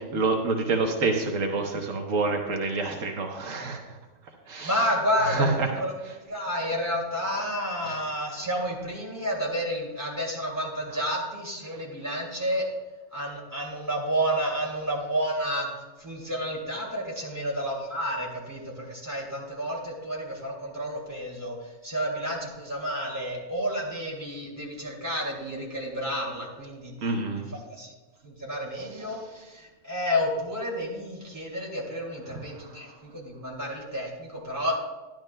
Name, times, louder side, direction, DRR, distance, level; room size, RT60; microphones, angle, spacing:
voice 1, 0.0-3.8 4.5-4.9 5.2-5.7 7.9-8.0 27.0-27.5 29.0-29.2 32.6-32.7, right 3 dB, 85° right, 2 dB, 1.3 m, -27 dB
voice 2, 4.6-5.9 6.3-12.7 13.1-15.7 16.0-27.9 28.2-34.8, equal, 15° right, -3 dB, 2.5 m, -30 dB
12.0 x 10.5 x 2.2 m, 1.2 s
omnidirectional pair, 1.3 m